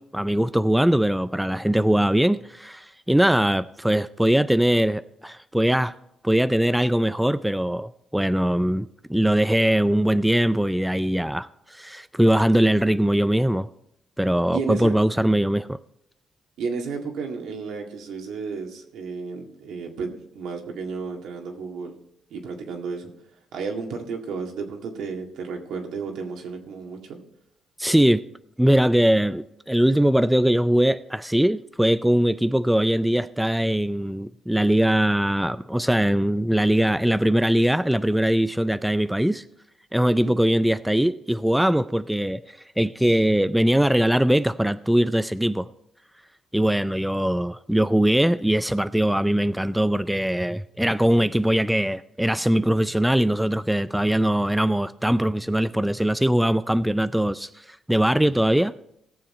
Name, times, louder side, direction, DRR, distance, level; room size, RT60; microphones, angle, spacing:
voice 1, 0.0-6.0 6.2-13.7 14.2-15.8 27.8-28.2 28.6-39.4 39.9-45.7 46.5-58.7, right 1 dB, 5° right, 0.3 m, -21 dB
voice 2, 14.5-15.0 16.6-21.9 22.3-23.1 23.5-27.2 40.1-40.4, right 5 dB, 80° right, 2.0 m, -32 dB
18.0 x 7.1 x 4.3 m
cardioid pair, 90°, 0 cm